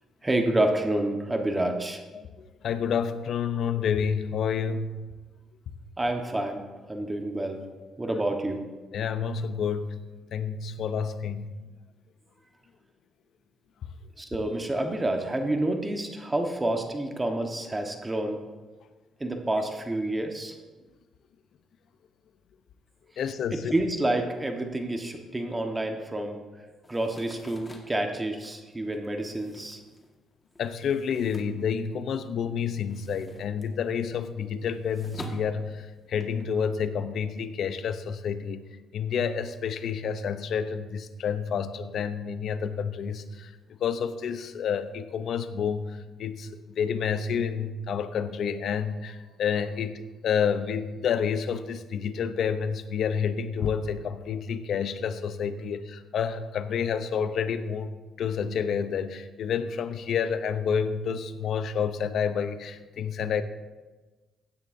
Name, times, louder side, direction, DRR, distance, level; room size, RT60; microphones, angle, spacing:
voice 1, 0.2-2.0 6.0-7.6 8.0-8.7 14.2-18.4 19.2-20.6 23.5-26.4 26.9-29.8, right 1 dB, 20° right, 4 dB, 1.3 m, -28 dB
voice 2, 2.1-5.1 8.9-9.9 10.3-11.5 23.2-23.7 30.6-43.5 43.8-57.9 58.2-63.4, left 7 dB, 65° left, 11 dB, 0.7 m, -29 dB
sound 1, 26.8-32.3 32.6-36.5, left 1 dB, 15° left, 1.7 m, -48 dB
16.0 x 9.5 x 2.7 m, 1.2 s
cardioid pair, 90°, 0 cm